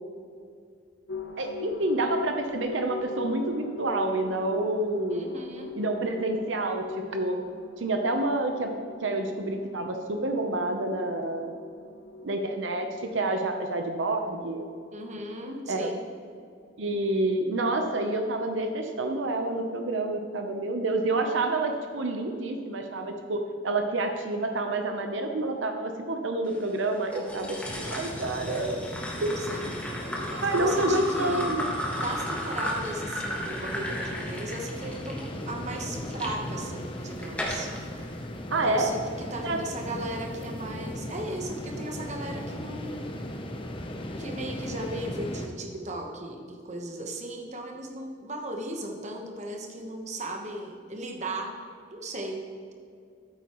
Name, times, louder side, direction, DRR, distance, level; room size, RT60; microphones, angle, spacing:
sound 1, 1.1-14.9, left 5 dB, 75° left, 0.8 m, -41 dB
voice 1, 1.4-5.3 5.7-6.8 7.1-7.4 7.8-11.5 12.2-14.7 15.7-15.9 16.8-28.8 29.2-29.4 30.3-31.7 38.5-38.9 39.4-39.6, right 2 dB, 85° right, 4 dB, 0.8 m, -28 dB
voice 2, 5.1-5.8 14.9-16.0 29.4-31.5 32.0-37.7 38.6-43.1 44.2-51.5 51.9-52.4, right 1 dB, 40° right, 2 dB, 1.2 m, -37 dB
sound 2, 27.1-36.3 36.9-37.8, left 1 dB, 5° left, 1.4 m, -35 dB
sound 3, 27.7-45.5, left 1 dB, 30° left, 0.7 m, -37 dB
13.0 x 8.1 x 3.1 m, 2.3 s
head